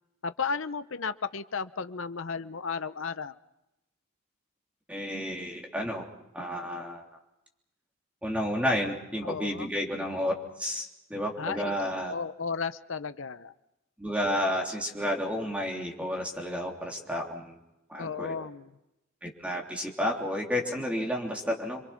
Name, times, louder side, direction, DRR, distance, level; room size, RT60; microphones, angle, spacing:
voice 1, 0.2-3.3 9.2-9.7 11.4-11.7 12.1-13.5 18.0-18.7, left 5 dB, 65° left, 11 dB, 0.8 m, -34 dB
voice 2, 4.9-6.1 6.3-7.0 8.2-10.3 10.6-12.1 14.0-17.6 17.9-18.5 19.2-21.8, equal, 5° right, 0 dB, 3.3 m, -31 dB
28.0 x 23.5 x 5.9 m, 0.91 s
head